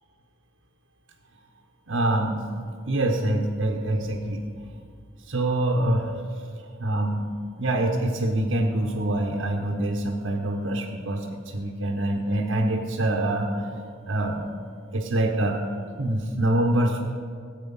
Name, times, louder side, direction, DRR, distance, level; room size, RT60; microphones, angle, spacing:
voice 1, 1.9-2.4 2.9-4.5 5.2-6.1 6.8-13.7 14.1-14.5 14.9-15.6 16.0-17.0, right 1 dB, 85° right, 0 dB, 1.1 m, -25 dB
15.0 x 8.2 x 5.5 m, 2.1 s
head